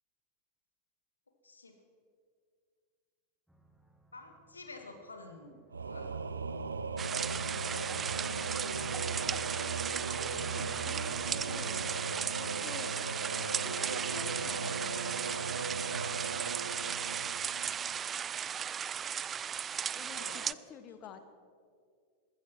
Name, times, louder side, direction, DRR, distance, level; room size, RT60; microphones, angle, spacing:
voice 1, 1.4-1.7 4.1-6.1 20.1-20.5, left 2 dB, 80° left, 5 dB, 1.9 m, -51 dB
sound 1, 3.5-15.1, right 2 dB, 5° right, 1.4 m, -61 dB
Singing / Musical instrument, 5.7-18.3, right 4 dB, 75° right, 0.6 m, -38 dB
sound 2, 7.0-20.5, right 8 dB, 25° right, 0.3 m, -36 dB
voice 2, 7.7-11.9 12.3-12.9 13.4-15.4 19.9-21.2, left 8 dB, 35° left, 10 dB, 1.2 m, -50 dB
14.5 x 14.0 x 6.1 m, 2.2 s
figure-of-eight pair, 90°, 0 cm